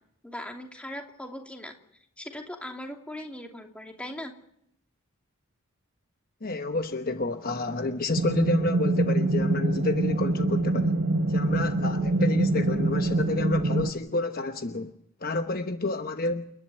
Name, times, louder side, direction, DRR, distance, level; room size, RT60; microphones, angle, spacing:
voice 1, 0.2-1.7 2.2-4.3, left 1 dB, 5° left, 2.8 m, -39 dB
voice 2, 6.4-11.0 11.3-14.9 15.2-16.5, left 2 dB, 45° left, 1.1 m, -29 dB
sound 1, 8.1-13.9, right 2 dB, 50° right, 1.3 m, -25 dB
29.5 x 11.0 x 9.2 m
head